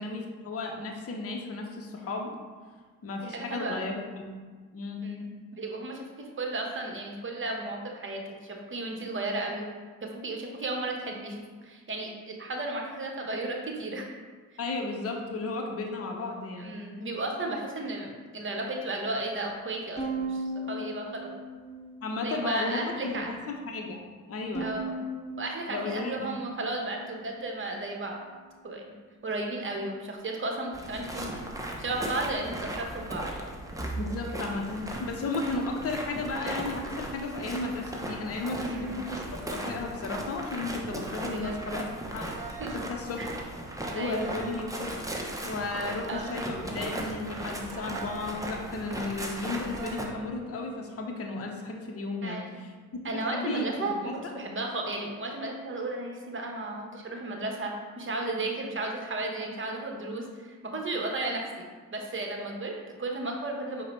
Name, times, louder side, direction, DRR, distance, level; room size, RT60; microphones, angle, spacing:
voice 1, 0.0-2.4 3.0-4.4 4.7-5.0 14.6-16.7 22.0-24.0 24.3-24.7 25.7-26.4 34.0-41.8 42.1-42.3 42.7-43.2 43.9-44.9 45.4-52.7 53.1-54.1, left 3 dB, 40° left, 1 dB, 0.7 m, -34 dB
voice 2, 3.2-3.8 5.0-6.1 6.4-9.7 10.0-14.1 16.6-21.3 22.2-23.3 24.6-24.9 25.4-28.2 28.6-28.9 29.2-31.4 31.8-33.3 38.6-39.0 41.3-41.6 42.6-42.7 43.2-43.3 44.0-44.3 46.1-46.2 52.2-52.5 53.0-54.1 54.3-61.4 61.9-63.8, right 2 dB, 30° right, 1 dB, 0.9 m, -34 dB
Bowed string instrument, 20.0-22.3 22.8-23.6 24.5-27.1, right 2 dB, 15° left, 1.0 m, -38 dB
sound 1, 30.7-50.1, right 1 dB, 10° right, 0.7 m, -37 dB
sound 2, 42.1-42.9 44.0-44.7 45.8-46.6 47.7-48.4 49.5-50.1, right 5 dB, 90° right, 0.6 m, -43 dB
4.8 x 2.2 x 4.2 m, 1.5 s
supercardioid pair, 50°, 39 cm